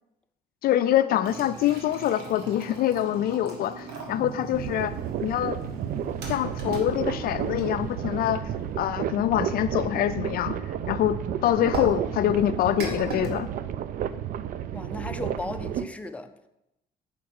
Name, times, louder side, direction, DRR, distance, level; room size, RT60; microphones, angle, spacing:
voice 1, 0.6-4.9 5.2-5.6 6.3-8.4 8.8-10.5 10.9-13.5, left 12 dB, 60° left, 0.4 m, -25 dB
sound 1, 1.2-8.9 11.7-13.3, right 3 dB, 70° right, 1.6 m, -39 dB
Train, 4.0-12.9, right 4 dB, 25° right, 1.3 m, -42 dB
sound 2, 4.5-15.9, right 10 dB, 55° right, 0.4 m, -32 dB
voice 2, 14.7-16.5, left 2 dB, 10° left, 0.5 m, -36 dB
6.4 x 4.7 x 6.1 m
cardioid pair, 110°, 17 cm